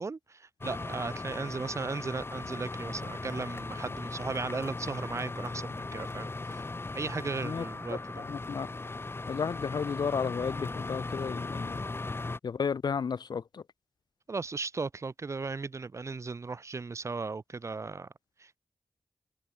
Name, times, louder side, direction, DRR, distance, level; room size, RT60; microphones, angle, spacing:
voice 1, 0.0-6.6 6.9-8.2 14.3-18.1 18.4-18.6, right 4 dB, 45° right, 0.6 m, -36 dB
sound 1, 0.6-12.4, left 3 dB, 35° left, 1.1 m, -38 dB
voice 2, 8.1-8.7 9.3-11.8 12.4-13.6, left 6 dB, 75° left, 0.8 m, -33 dB
open air
cardioid pair, 65°, 7 cm